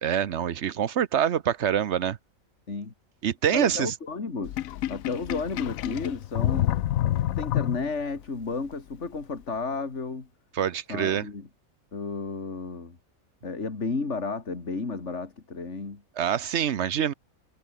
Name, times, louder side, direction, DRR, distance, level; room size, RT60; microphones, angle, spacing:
voice 1, 0.0-2.2 3.2-3.9 10.5-11.3 16.2-17.1, right 9 dB, 55° right, 1.1 m, -25 dB
voice 2, 3.5-4.6 4.9-6.7 7.2-10.3 10.9-11.5 11.9-13.0 13.4-16.0, left 4 dB, 55° left, 3.0 m, -32 dB
Sink (filling or washing), 4.4-8.2, left 13 dB, 75° left, 1.1 m, -28 dB
omnidirectional pair, 1.5 m